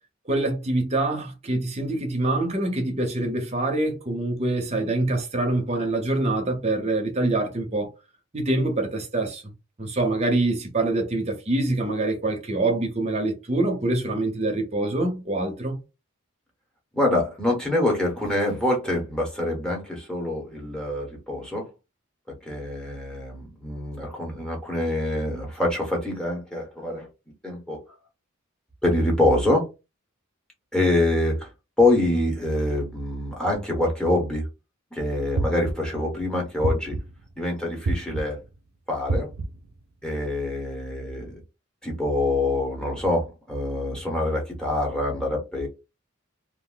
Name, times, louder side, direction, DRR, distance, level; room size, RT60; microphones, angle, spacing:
voice 1, 0.3-7.9 8.3-9.4 9.8-15.8, right 2 dB, 30° right, 0.8 m, -25 dB
voice 2, 16.9-21.7 22.3-27.1 27.4-27.8 28.8-29.7 30.7-31.5 31.8-34.5 34.9-37.0 37.4-38.4 38.9-39.3 40.0-41.4 41.8-45.7, left 1 dB, 5° left, 1.1 m, -25 dB
sound 1, 35.4-36.0 36.6-37.3 37.9-38.5 39.1-39.7, right 2 dB, 75° right, 0.5 m, -28 dB
2.6 x 2.1 x 3.8 m
head